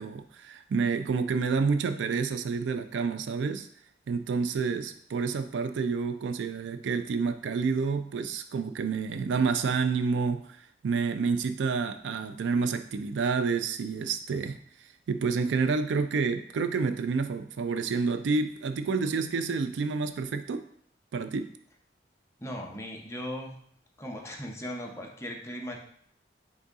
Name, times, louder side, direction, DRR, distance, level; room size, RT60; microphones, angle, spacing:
voice 1, 0.0-3.7 4.1-10.4 10.8-14.6 15.1-20.6 21.1-21.5, right 5 dB, 80° right, 9 dB, 0.3 m, -29 dB
voice 2, 22.4-23.5 24.0-25.8, equal, 15° left, 0 dB, 0.6 m, -38 dB
4.0 x 3.8 x 3.5 m, 0.63 s
head